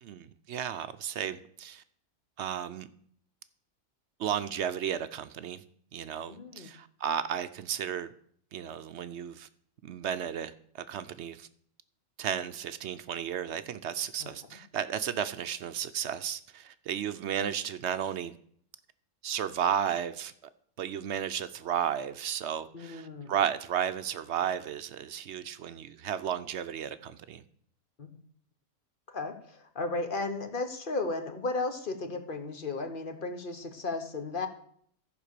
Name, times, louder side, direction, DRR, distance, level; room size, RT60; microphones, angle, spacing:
voice 1, 0.0-1.8 2.4-2.9 4.2-5.6 5.9-8.1 8.5-9.5 9.8-10.5 10.9-11.5 12.2-18.3 19.2-20.3 20.8-27.4, right 9 dB, 65° right, 0.8 m, -33 dB
voice 2, 6.3-6.7 14.2-14.3 22.7-23.3 28.0-28.1 29.1-34.5, left 3 dB, 45° left, 1.2 m, -34 dB
14.0 x 5.2 x 6.6 m
omnidirectional pair, 1.4 m